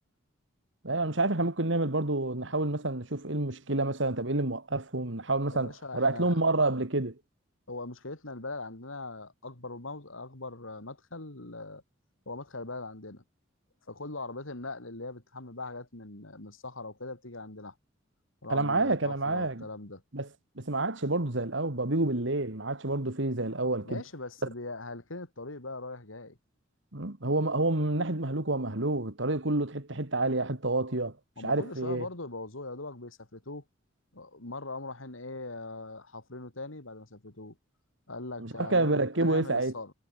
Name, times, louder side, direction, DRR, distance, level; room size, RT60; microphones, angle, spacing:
voice 1, 0.8-7.2 18.5-19.6 20.1-20.3 20.6-24.0 26.9-31.1 31.4-32.1 38.4-39.7, right 2 dB, 65° right, 2.3 m, -28 dB
voice 2, 5.5-6.4 7.7-11.8 12.2-13.2 13.9-17.7 18.4-20.0 23.8-26.4 31.4-33.6 34.1-37.6 38.1-39.9, left 2 dB, 85° left, 3.4 m, -41 dB
head